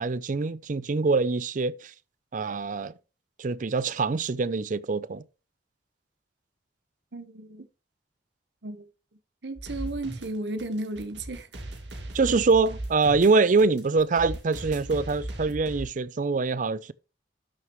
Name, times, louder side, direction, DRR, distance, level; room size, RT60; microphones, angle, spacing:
voice 1, 0.0-1.9 2.3-2.9 3.4-5.2 12.1-16.9, right 4 dB, 45° right, 0.5 m, -24 dB
voice 2, 7.1-7.7 8.6-8.8 9.4-11.5, right 2 dB, 75° right, 1.0 m, -34 dB
sound 1, 9.6-15.9, right 1 dB, 90° right, 2.2 m, -38 dB
12.0 x 6.6 x 3.0 m
head